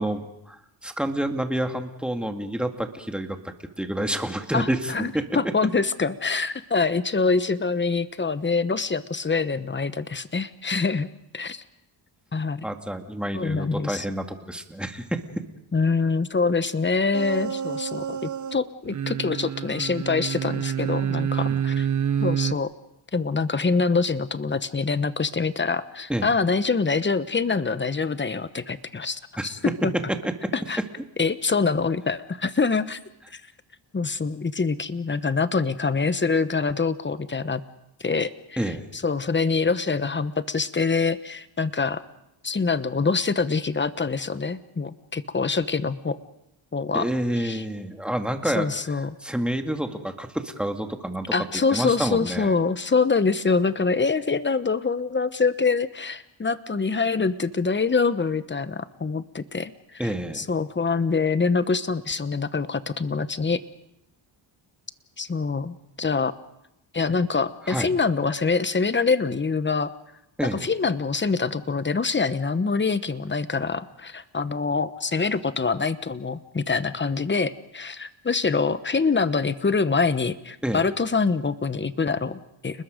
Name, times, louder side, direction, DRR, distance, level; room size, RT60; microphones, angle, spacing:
voice 1, 0.0-5.2 12.6-15.2 21.4-21.6 26.1-26.3 29.4-29.5 30.2-30.5 38.6-38.9 46.9-48.7 49.2-51.3 51.7-52.6 60.0-60.5 67.7-67.9 70.4-70.6 80.6-80.8, right 1 dB, ahead, 5 dB, 2.1 m, -28 dB
voice 2, 4.5-11.1 11.3-11.6 12.3-12.7 13.3-14.0 15.7-21.9 22.2-22.7 23.1-29.9 30.5-30.8 31.2-33.0 33.3-33.4 33.9-37.6 38.0-42.0 42.4-46.2 46.7-47.1 47.4-47.6 48.5-49.2 51.3-63.6 65.2-66.3 66.9-69.9 70.4-82.8, left 4 dB, 20° left, 13 dB, 1.1 m, -25 dB
sound 1, 17.1-18.5 18.8-22.5, right 8 dB, 35° right, 0.8 m, -27 dB
30.0 x 20.5 x 5.2 m, 0.83 s
cardioid pair, 90°, 49 cm